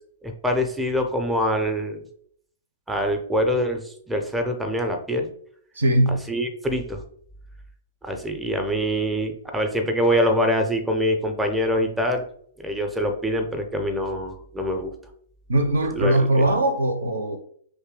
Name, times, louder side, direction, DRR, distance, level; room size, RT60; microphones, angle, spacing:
voice 1, 0.2-2.0 2.9-5.3 6.1-7.0 8.0-12.3 12.6-14.9 16.0-16.5, equal, 5° right, 0.5 m, -24 dB
voice 2, 5.8-6.2 15.5-17.4, right 1 dB, 65° right, 0.5 m, -20 dB
3.1 x 2.7 x 3.6 m
figure-of-eight pair, 105°, 0 cm